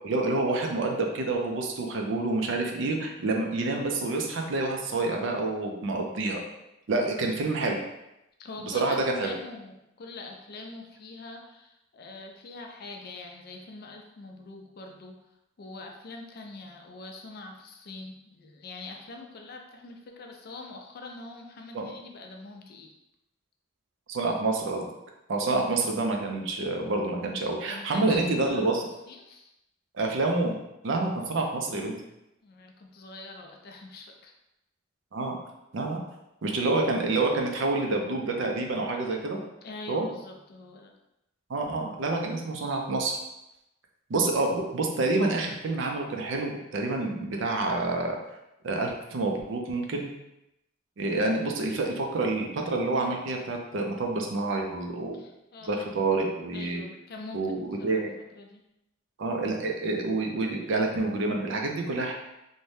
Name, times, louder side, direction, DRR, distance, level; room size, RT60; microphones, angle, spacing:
voice 1, 0.0-6.4 6.9-7.8 8.7-9.3 21.7-21.9 24.1-24.9 25.3-28.8 29.9-30.6 30.8-31.9 35.1-35.3 35.7-36.0 36.4-39.4 39.9-40.1 41.5-43.2 44.1-48.2 48.6-50.1 51.0-55.2 55.7-56.8 57.3-58.1 59.2-62.1, right 2 dB, 65° right, 2 dB, 0.4 m, -28 dB
voice 2, 8.4-15.2 15.6-22.9 27.7-28.8 29.1-29.5 32.4-34.3 39.6-40.9 51.2-51.6 55.1-55.8 56.5-57.5 57.8-58.0 58.3-58.6, left 3 dB, 50° left, 2 dB, 0.4 m, -44 dB
2.6 x 2.1 x 3.2 m, 0.89 s
head